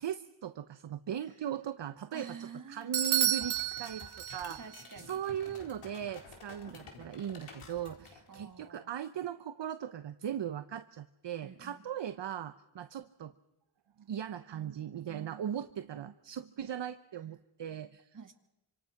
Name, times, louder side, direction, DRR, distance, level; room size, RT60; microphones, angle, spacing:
voice 1, 0.0-4.6 5.1-13.3 14.0-18.2, right 9 dB, 60° right, 11 dB, 0.9 m, -39 dB
voice 2, 2.1-3.0 4.5-5.2 8.3-8.9 11.4-11.8 18.1-18.3, right 6 dB, 40° right, 5 dB, 2.4 m, -48 dB
Bell / Doorbell, 2.9-4.8, right 11 dB, 90° right, 1.0 m, -31 dB
sound 1, 3.4-8.6, left 4 dB, 90° left, 4.4 m, -51 dB
26.5 x 26.0 x 5.9 m, 0.95 s
wide cardioid pair, 95°, 48 cm